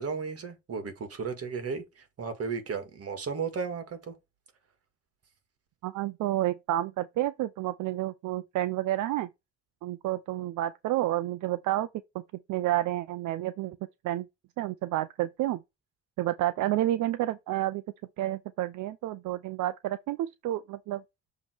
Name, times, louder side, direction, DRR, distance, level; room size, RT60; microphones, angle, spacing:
voice 1, 0.0-4.1, right 5 dB, 50° right, 1.8 m, -34 dB
voice 2, 5.8-9.3 9.8-11.9 12.1-12.2 12.5-13.8 14.0-14.3 14.6-15.6 16.2-17.8 18.2-21.0, right 14 dB, 80° right, 0.5 m, -30 dB
7.2 x 3.1 x 4.4 m
cardioid pair, 90°, 30 cm